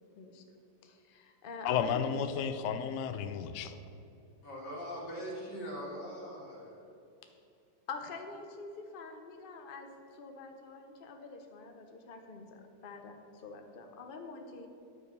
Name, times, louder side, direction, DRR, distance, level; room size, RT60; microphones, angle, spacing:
voice 1, 0.8-2.1 7.9-12.4 12.8-14.7, left 4 dB, 45° left, 4 dB, 0.7 m, -46 dB
voice 2, 1.6-3.8, left 7 dB, 90° left, 10 dB, 0.6 m, -32 dB
voice 3, 4.4-6.9, equal, 70° left, -4 dB, 2.6 m, -41 dB
9.7 x 4.8 x 6.7 m, 2.7 s
omnidirectional pair, 1.9 m